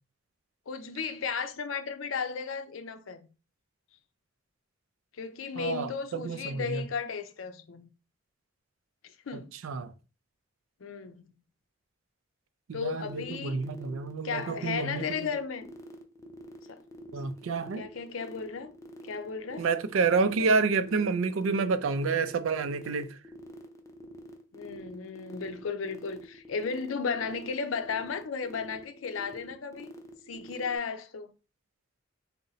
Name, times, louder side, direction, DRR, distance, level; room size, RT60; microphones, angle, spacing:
voice 1, 0.7-3.3 5.2-7.9 9.0-9.5 10.8-11.3 12.7-13.6 14.2-15.7 16.7-16.8 17.8-18.7 19.0-19.7 20.4-20.5 24.5-29.9 30.3-31.3, left 5 dB, 80° left, 0.5 m, -35 dB
voice 2, 5.6-6.8 9.6-9.9 12.7-15.0 17.1-17.9 19.6-23.2, right 4 dB, 80° right, 0.4 m, -29 dB
sound 1, 13.0-30.7, right 1 dB, 15° left, 0.5 m, -48 dB
3.9 x 2.1 x 3.9 m
head